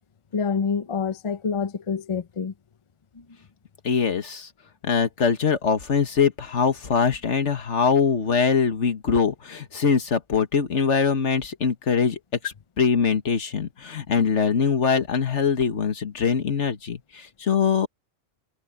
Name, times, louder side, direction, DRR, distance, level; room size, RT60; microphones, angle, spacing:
voice 1, 0.3-2.5 3.1-3.2, left 5 dB, 30° left, 0.6 m, -27 dB
voice 2, 3.8-4.5 4.8-12.2 12.4-17.9, left 6 dB, 70° left, 1.8 m, -23 dB
omnidirectional pair, 1.2 m